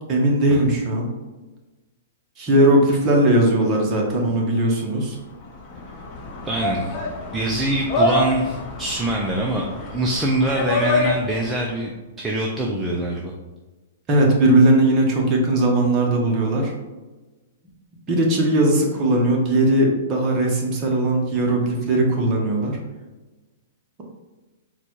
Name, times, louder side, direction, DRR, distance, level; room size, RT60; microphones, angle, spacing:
voice 1, 0.1-1.1 2.4-5.2 14.1-16.7 18.1-22.8, right 1 dB, 25° right, -1 dB, 1.0 m, -19 dB
sound 1, 5.3-11.6, left 2 dB, 25° left, 0.8 m, -26 dB
voice 2, 6.4-7.0 7.3-9.7 9.9-13.3, right 1 dB, 10° right, -1 dB, 0.4 m, -24 dB
3.9 x 2.3 x 4.5 m, 1.2 s
hypercardioid pair, 150°, 0 cm